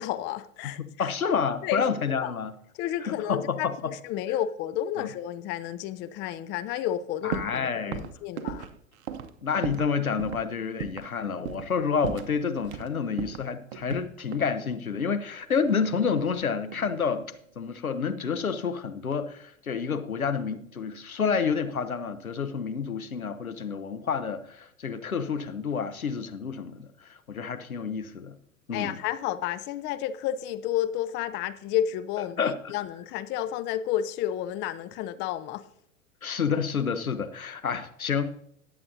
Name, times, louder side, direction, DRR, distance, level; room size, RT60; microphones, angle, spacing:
voice 1, 0.0-1.1 1.6-1.8 2.2-2.3 2.8-8.7 28.7-35.6, left 11 dB, 25° left, 0.5 m, -31 dB
voice 2, 0.6-2.6 3.0-3.9 5.0-5.1 7.2-8.0 9.4-28.3 28.7-29.0 32.4-32.7 36.2-38.3, left 6 dB, 90° left, 0.9 m, -29 dB
sound 1, 7.3-7.6 7.9-9.9 10.2-10.4 10.8-11.1 11.5-11.7 12.0-12.9 13.2-14.5 15.5-16.4 16.7-17.1, right 9 dB, 55° right, 0.9 m, -37 dB
19.0 x 7.7 x 2.7 m
figure-of-eight pair, 90°, 41 cm